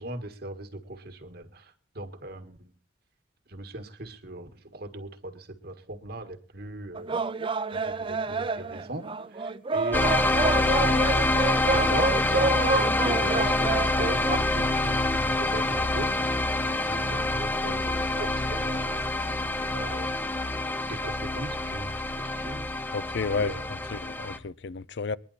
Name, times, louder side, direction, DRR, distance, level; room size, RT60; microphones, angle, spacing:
voice 1, 0.0-1.6 2.0-2.7 3.5-7.2 7.7-9.0 9.3-10.7 11.6-16.2 16.7-19.0 19.7-20.1 20.9-22.6 23.3-23.8, right 1 dB, 55° right, 1.8 m, -38 dB
sound 1, 7.0-14.4, right 3 dB, 30° right, 0.6 m, -28 dB
sound 2, 9.9-24.4, left 2 dB, 10° left, 0.9 m, -26 dB
voice 2, 22.9-25.2, left 4 dB, 65° left, 0.6 m, -32 dB
21.5 x 10.5 x 4.2 m
head